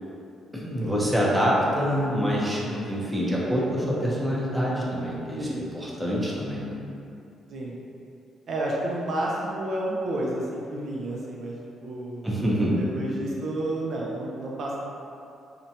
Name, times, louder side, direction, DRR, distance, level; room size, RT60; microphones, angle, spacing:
voice 1, 0.5-5.4 5.7-6.8 12.2-12.7, equal, 10° right, -5 dB, 0.6 m, -26 dB
voice 2, 8.5-11.6 11.8-12.3 12.8-14.8, right 1 dB, 60° right, -4 dB, 0.4 m, -30 dB
2.6 x 2.1 x 2.7 m, 2.6 s
cardioid pair, 90°, 0 cm